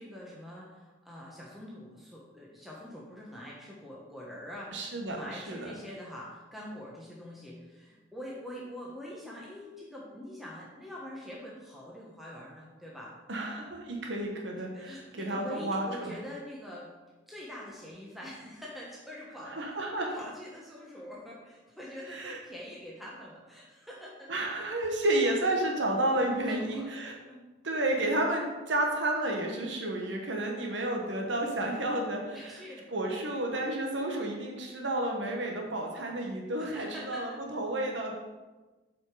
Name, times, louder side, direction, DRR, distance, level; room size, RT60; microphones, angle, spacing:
voice 1, 0.0-13.1 14.7-16.9 17.3-19.8 20.1-24.3 26.4-26.9 27.3-27.5 32.3-32.9 36.5-37.4, left 1 dB, ahead, -5 dB, 1.1 m, -44 dB
voice 2, 4.7-5.8 13.3-16.1 19.4-20.2 22.1-22.4 24.3-27.1 27.6-32.6 32.9-38.1, right 1 dB, 75° right, 1 dB, 1.1 m, -31 dB
7.9 x 5.0 x 4.8 m, 1.2 s
head